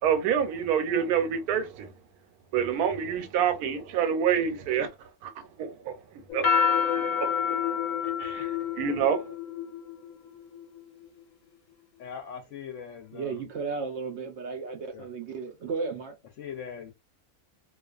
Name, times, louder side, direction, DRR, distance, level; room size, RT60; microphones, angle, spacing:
voice 1, 0.0-1.9 2.5-4.9 5.2-6.6 7.0-7.8 8.2-9.3, right 8 dB, 85° right, 1.1 m, -28 dB
sound 1, 6.3-11.1, left 7 dB, 90° left, 1.1 m, -28 dB
voice 2, 12.0-13.4 14.9-15.1 16.4-16.9, left 7 dB, 65° left, 0.8 m, -40 dB
voice 3, 13.1-16.1, right 4 dB, 65° right, 0.7 m, -34 dB
2.4 x 2.4 x 2.3 m
omnidirectional pair, 1.5 m